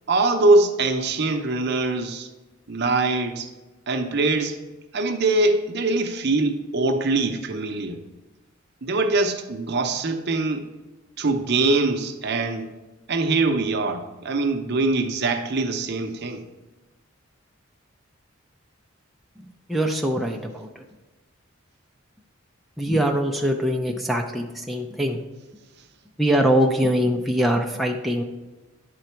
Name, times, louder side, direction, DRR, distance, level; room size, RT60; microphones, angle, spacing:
voice 1, 0.1-2.3 2.7-3.5 3.9-4.6 4.9-8.0 8.8-10.7 11.2-12.7 13.1-16.4, right 2 dB, 55° right, 6 dB, 0.7 m, -23 dB
voice 2, 19.7-20.7 22.8-25.2 26.2-28.2, equal, ahead, 0 dB, 0.5 m, -22 dB
10.0 x 3.9 x 4.5 m, 1.1 s
head